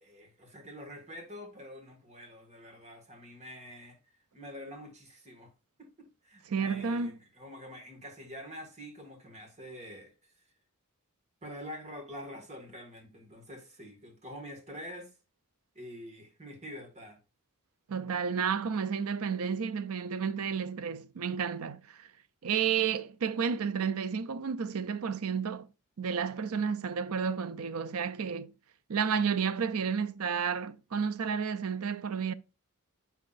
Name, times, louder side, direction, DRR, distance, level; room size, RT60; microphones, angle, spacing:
voice 1, 0.0-4.0 4.3-5.5 5.8-10.3 11.4-15.1 15.8-17.2, equal, 30° right, 1.9 m, -46 dB
voice 2, 6.5-7.2 17.9-22.1 22.4-25.7 26.0-28.5 28.9-32.3, right 6 dB, 75° right, 0.5 m, -31 dB
7.1 x 5.8 x 2.6 m
head